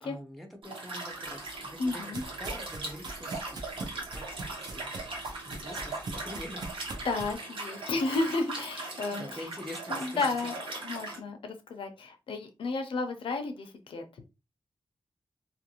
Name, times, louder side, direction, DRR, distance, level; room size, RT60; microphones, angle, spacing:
voice 1, 0.0-3.8 4.1-4.9 5.4-6.6 6.9-7.1 9.1-10.5, left 1 dB, ahead, 3 dB, 0.5 m, -45 dB
Liquid, 0.6-11.2, right 2 dB, 80° right, 1.1 m, -39 dB
sound 1, 1.2-7.3, right 2 dB, 50° right, 0.6 m, -43 dB
voice 2, 1.8-2.2 5.6-6.0 7.0-9.5 9.9-10.5 10.8-14.0, left 3 dB, 80° left, 6 dB, 0.6 m, -33 dB
2.5 x 2.5 x 2.9 m, 0.27 s
wide cardioid pair, 180°, 9 cm